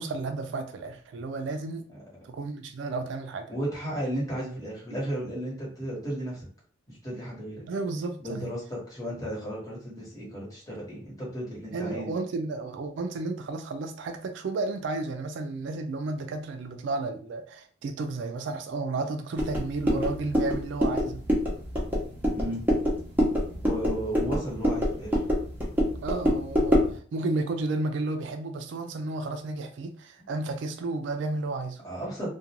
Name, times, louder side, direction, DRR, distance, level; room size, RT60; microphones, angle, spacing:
voice 1, 0.0-1.8 2.2-3.5 7.7-8.5 11.7-21.2 26.0-31.8, right 3 dB, 60° right, 0.3 m, -32 dB
voice 2, 3.5-6.5 6.9-7.6 8.2-12.1 22.3-22.6 23.6-25.2 31.8-32.3, right 1 dB, 20° left, 1.1 m, -34 dB
sound 1, 19.4-27.0, equal, 10° right, 0.6 m, -26 dB
2.4 x 2.2 x 2.9 m
head